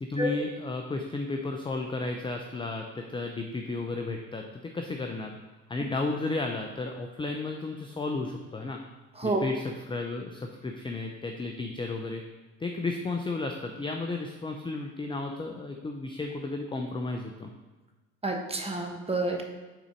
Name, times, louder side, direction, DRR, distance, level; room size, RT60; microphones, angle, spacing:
voice 1, 0.0-4.4 4.7-5.4 5.7-8.8 9.2-12.2 12.6-17.5, left 3 dB, 15° left, 3 dB, 0.5 m, -33 dB
voice 2, 18.2-19.4, right 2 dB, 15° right, 2 dB, 1.1 m, -29 dB
6.1 x 3.9 x 5.2 m, 1.2 s
hypercardioid pair, 70°, 38 cm